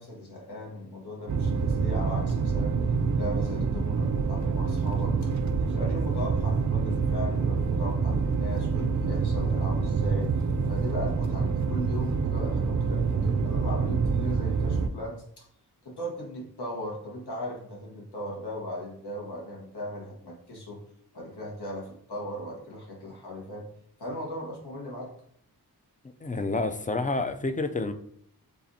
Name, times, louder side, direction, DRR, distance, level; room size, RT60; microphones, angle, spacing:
voice 1, 0.0-2.8 3.1-5.3 5.7-10.3 10.7-15.5 15.8-20.8 21.1-23.7 24.0-25.1, equal, 80° left, -3 dB, 1.3 m, -38 dB
sound 1, 1.3-14.9, right 5 dB, 50° right, 0.4 m, -26 dB
voice 2, 26.2-27.9, left 3 dB, 20° left, 8 dB, 0.4 m, -29 dB
6.8 x 2.5 x 2.7 m, 0.67 s
wide cardioid pair, 55°, 39 cm